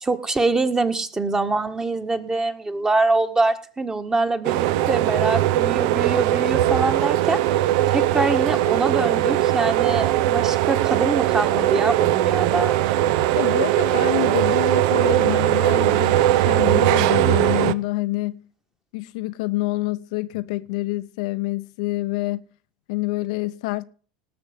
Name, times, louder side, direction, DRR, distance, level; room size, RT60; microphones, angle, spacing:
voice 1, 0.0-7.4 7.9-12.7, right 3 dB, 15° right, 1.6 m, -24 dB
sound 1, 4.4-17.7, right 14 dB, 65° right, 0.6 m, -20 dB
voice 2, 13.3-18.4 18.9-22.4 22.9-23.8, left 19 dB, 70° left, 0.7 m, -27 dB
19.0 x 6.9 x 5.2 m
hypercardioid pair, 85°, 4 cm